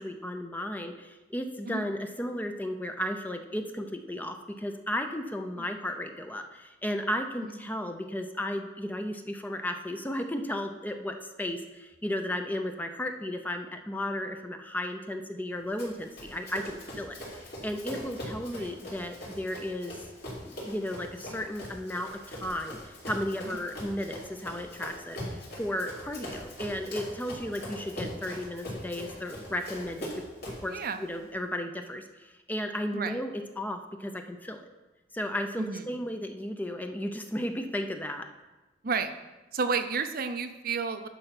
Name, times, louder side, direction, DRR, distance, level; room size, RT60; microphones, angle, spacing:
voice 1, 0.0-17.2 17.6-19.9 20.5-30.1 30.4-34.6 35.1-38.3, left 1 dB, 10° left, 6 dB, 0.6 m, -34 dB
Run, 15.8-30.7, equal, 60° left, 3.6 m, -41 dB
voice 2, 30.7-31.0 32.9-33.2 35.6-35.8 38.8-39.1 39.5-41.1, right 5 dB, 55° right, 8 dB, 0.6 m, -31 dB
11.0 x 4.4 x 5.8 m, 1.1 s
head